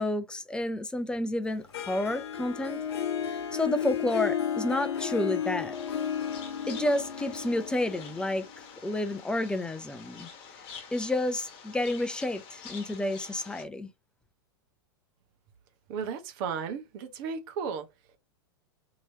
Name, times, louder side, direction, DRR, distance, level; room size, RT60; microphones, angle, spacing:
voice 1, 0.0-2.8 3.3-5.8 6.7-10.3 10.9-13.9, left 1 dB, 5° left, 0.4 m, -30 dB
Harp, 1.7-8.6, left 8 dB, 75° left, 0.7 m, -33 dB
sound 1, 5.7-13.7, left 6 dB, 40° left, 1.1 m, -47 dB
voice 2, 15.9-17.9, right 6 dB, 50° right, 1.0 m, -34 dB
3.0 x 2.9 x 2.7 m
hypercardioid pair, 105°, 14 cm